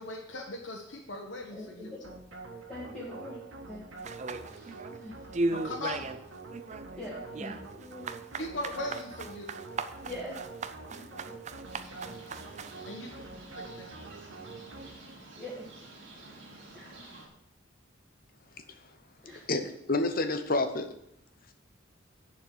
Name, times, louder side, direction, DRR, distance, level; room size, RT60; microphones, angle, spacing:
voice 1, 0.0-1.9 5.5-6.1 8.4-9.6 12.8-13.1 13.6-14.0, left 2 dB, 70° left, 1.2 m, -39 dB
voice 2, 1.5-2.1 2.7-3.4 3.7-3.9 4.5-5.1 7.0-8.1 10.0-10.4 10.9-11.3 12.7-12.9 13.2-13.3 14.8-15.0 15.3-15.5 16.1-16.4 16.7-17.1 19.2-19.5, left 1 dB, 5° left, 2.0 m, -44 dB
sound 1, 2.0-15.2, right 3 dB, 80° right, 1.8 m, -46 dB
sound 2, 4.0-5.0 5.3-6.2 6.5-12.8, right 3 dB, 35° right, 0.5 m, -36 dB
sound 3, 11.6-17.3, right 2 dB, 60° right, 2.4 m, -50 dB
voice 3, 19.5-20.9, left 2 dB, 45° left, 0.9 m, -29 dB
10.5 x 4.5 x 7.5 m
head